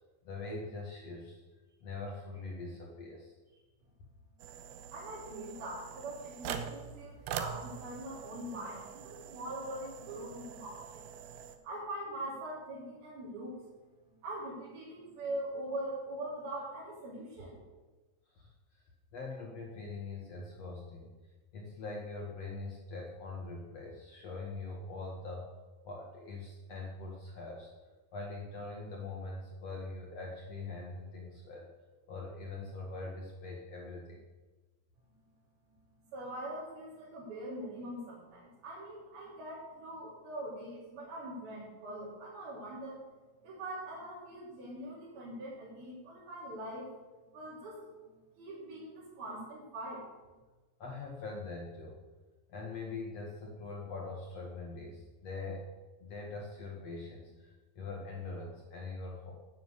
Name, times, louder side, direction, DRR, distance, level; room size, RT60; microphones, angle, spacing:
voice 1, 0.2-1.4 1.8-3.6 18.3-18.5 18.7-18.8 19.1-21.1 21.5-25.5 25.8-27.7 28.1-31.7 32.1-34.2 50.8-52.0 52.5-55.6 56.0-59.3, left 3 dB, 50° left, -1 dB, 2.4 m, -43 dB
sound 1, 4.4-11.6, right 8 dB, 85° right, 2.9 m, -44 dB
voice 2, 4.9-11.1 11.6-13.6 14.2-17.6 36.1-43.1 43.4-46.9 47.3-47.8 48.1-50.1, right 1 dB, 70° right, -9 dB, 5.5 m, -42 dB
11.0 x 9.6 x 8.2 m, 1.2 s
omnidirectional pair, 4.4 m